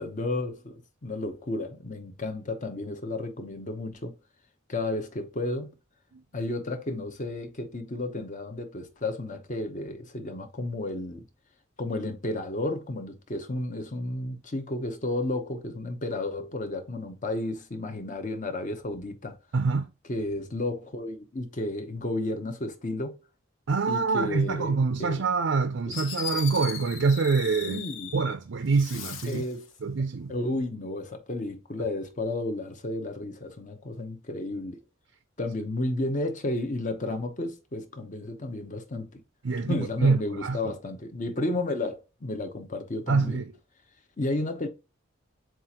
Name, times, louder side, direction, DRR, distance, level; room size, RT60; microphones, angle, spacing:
voice 1, 0.0-4.2 4.7-5.7 6.3-11.3 11.8-19.4 20.1-23.2 23.9-25.2 25.9-26.0 27.6-28.1 29.3-29.7 30.3-34.8 35.4-39.2 39.7-43.4 44.2-44.7, left 2 dB, 40° left, 0.9 m, -32 dB
voice 2, 19.5-19.9 23.7-27.8 28.1-29.4 29.8-30.3 39.4-40.6 43.1-43.4, right 4 dB, 65° right, 0.5 m, -25 dB
Fireworks, 25.5-25.6 25.9-28.3 28.7-29.5, left 7 dB, 70° left, 0.9 m, -37 dB
7.5 x 2.5 x 2.9 m
head